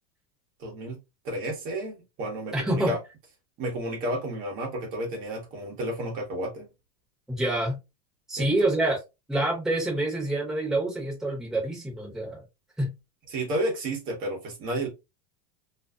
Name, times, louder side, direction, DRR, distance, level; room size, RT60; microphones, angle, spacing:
voice 1, 0.6-1.0 1.2-3.0 3.6-6.7 8.4-8.5 13.3-14.9, right 1 dB, 45° right, 1.1 m, -31 dB
voice 2, 2.5-2.9 7.3-7.8 8.3-9.0 9.3-12.4 12.8-12.9, right 1 dB, ahead, 1.1 m, -26 dB
2.6 x 2.3 x 2.3 m
supercardioid pair, 135°, 21 cm